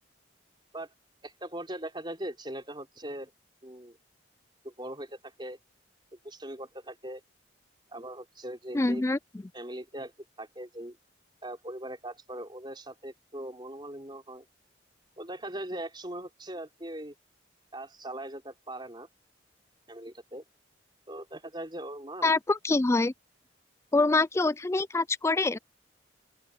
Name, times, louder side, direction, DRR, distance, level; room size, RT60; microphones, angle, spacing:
voice 1, 1.2-3.3 3.6-4.0 4.6-5.6 6.2-7.2 7.9-9.0 9.5-10.1 10.4-11.0 11.4-14.4 15.2-17.1 17.7-19.1 19.9-20.4 21.1-22.3, right 1 dB, 25° right, 4.4 m, -40 dB
voice 2, 8.7-9.2 22.2-23.1 23.9-25.6, left 3 dB, 15° left, 0.3 m, -25 dB
open air
head